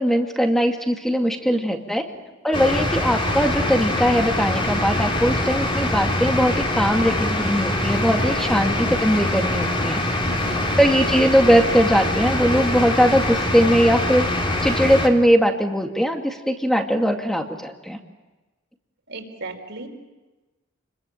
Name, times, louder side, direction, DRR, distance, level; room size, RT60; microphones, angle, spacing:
voice 1, 0.0-2.1 2.4-10.0 10.8-14.3 14.6-18.0, equal, ahead, 4 dB, 2.3 m, -20 dB
voice 2, 1.5-2.2 8.3-8.7 10.2-10.8 16.9-17.1 17.4-17.5 19.1-19.9, right 2 dB, 65° right, 4 dB, 4.5 m, -39 dB
sound 1, 2.5-15.1, left 1 dB, 25° left, 3.5 m, -24 dB
29.5 x 22.0 x 8.9 m, 1.2 s
head